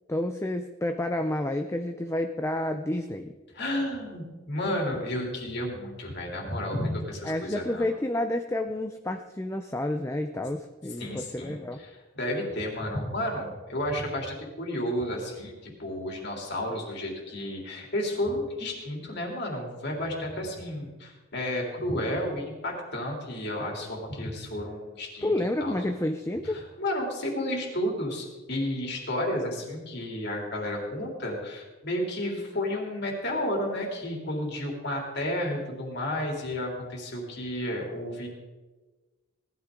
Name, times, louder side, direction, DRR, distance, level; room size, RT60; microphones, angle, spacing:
voice 1, 0.1-3.3 7.2-11.8 25.2-26.6, left 1 dB, 15° left, 6 dB, 0.5 m, -30 dB
voice 2, 3.5-7.9 11.0-25.3 25.6-25.7 26.4-38.3, left 1 dB, 55° left, 0 dB, 3.3 m, -32 dB
18.5 x 13.0 x 3.8 m, 1.3 s
head